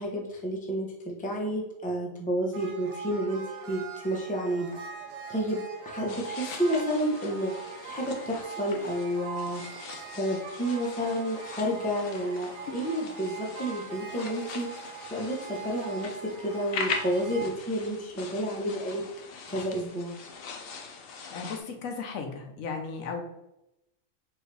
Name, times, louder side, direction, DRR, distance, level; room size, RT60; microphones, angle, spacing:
voice 1, 0.0-4.7 5.3-5.6 5.8-7.5 7.8-9.6 10.1-14.7 15.1-19.0 19.5-20.2, equal, 10° left, -2 dB, 0.5 m, -30 dB
sound 1, 2.5-17.5, right 5 dB, 60° right, 0.8 m, -42 dB
sound 2, 6.1-21.6, left 5 dB, 60° left, 0.6 m, -41 dB
voice 2, 21.3-23.2, left 5 dB, 90° left, 3 dB, 1.2 m, -35 dB
4.4 x 2.7 x 3.2 m, 0.90 s
omnidirectional pair, 1.4 m